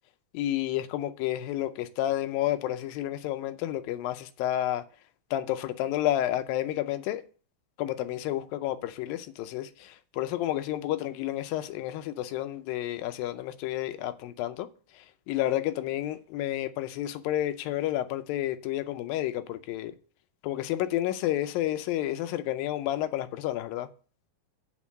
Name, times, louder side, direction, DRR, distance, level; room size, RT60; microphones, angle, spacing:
voice 1, 0.3-4.8 5.3-7.2 7.8-14.7 14.9-19.9 20.4-23.9, left 13 dB, 80° left, 2.3 m, -30 dB
8.7 x 4.4 x 7.3 m
omnidirectional pair, 4.2 m